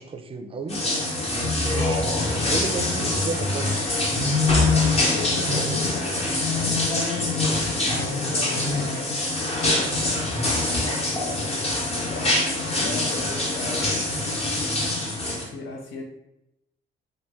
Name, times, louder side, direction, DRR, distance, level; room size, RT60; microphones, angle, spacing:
voice 1, 0.0-3.8 15.2-15.6, right 3 dB, 30° right, 7 dB, 0.4 m, -34 dB
sound 1, 0.7-15.4, left 2 dB, 30° left, 0.9 m, -24 dB
voice 2, 4.7-7.6 7.9-14.0 15.3-16.0, left 3 dB, 85° left, 0 dB, 0.7 m, -37 dB
2.9 x 2.2 x 3.5 m, 0.88 s
cardioid pair, 90°, 20 cm